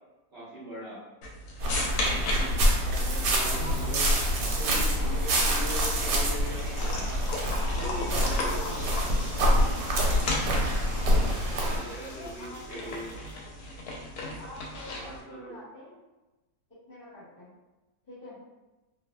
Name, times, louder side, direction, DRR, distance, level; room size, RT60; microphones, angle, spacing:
voice 1, 0.3-1.0 2.9-4.1 4.4-6.9 7.7-8.9 11.4-13.1 14.8-15.6, equal, 50° right, -11 dB, 0.9 m, -40 dB
sound 1, 1.2-15.2, left 2 dB, 75° left, 1.0 m, -37 dB
voice 2, 1.6-2.2 3.3-3.8 7.7-9.0 9.9-10.3 12.1-13.0 14.4-16.0 16.9-17.5 18.1-18.4, left 2 dB, 40° left, -11 dB, 1.0 m, -45 dB
sound 2, 1.6-11.8, equal, 85° right, 1.2 m, -26 dB
sound 3, 9.6-13.4, equal, 15° left, 1.1 m, -49 dB
2.5 x 2.5 x 2.2 m, 1.1 s
omnidirectional pair, 1.8 m